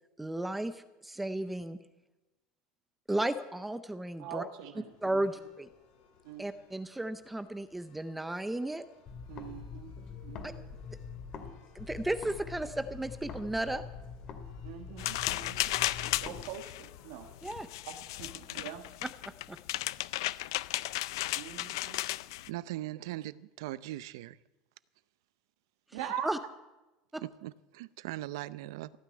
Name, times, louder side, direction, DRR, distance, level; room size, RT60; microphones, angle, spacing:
voice 1, 0.2-1.8 3.1-4.4 5.0-5.7 6.4-8.8 10.4-10.5 11.7-13.8 17.4-17.7 19.0-19.1 19.5-19.6 25.9-26.4 27.1-27.2, right 1 dB, 5° right, 0.5 m, -34 dB
voice 2, 4.2-5.2 6.2-6.5 9.3-9.9 10.2-10.7 14.6-17.3 17.9-18.8 21.4-22.0 25.9-26.3, right 9 dB, 70° right, 1.4 m, -43 dB
sound 1, 4.9-18.8, left 6 dB, 60° left, 5.3 m, -62 dB
sound 2, 9.1-11.5 11.8-16.4, left 5 dB, 35° left, 2.1 m, -44 dB
sound 3, 15.0-22.5, left 17 dB, 90° left, 0.5 m, -35 dB
voice 3, 22.5-24.4 27.2-28.9, right 16 dB, 85° right, 0.6 m, -40 dB
15.5 x 9.7 x 9.4 m
cardioid pair, 165°, 2 cm